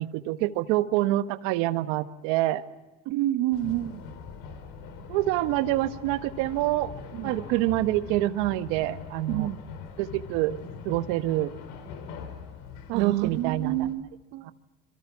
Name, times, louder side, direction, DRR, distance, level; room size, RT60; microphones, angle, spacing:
voice 1, 0.0-2.6 5.1-6.9 7.2-9.5 10.0-10.6 10.8-11.5 12.9-13.9 14.4-14.5, right 16 dB, 80° right, 12 dB, 1.3 m, -26 dB
voice 2, 3.1-4.0 7.2-7.3 9.3-9.6 12.9-14.5, right 14 dB, 65° right, 10 dB, 0.9 m, -28 dB
sound 1, 3.5-13.9, left 6 dB, 85° left, 4.4 m, -42 dB
27.0 x 23.5 x 7.3 m, 1.2 s
cardioid pair, 130°, 20 cm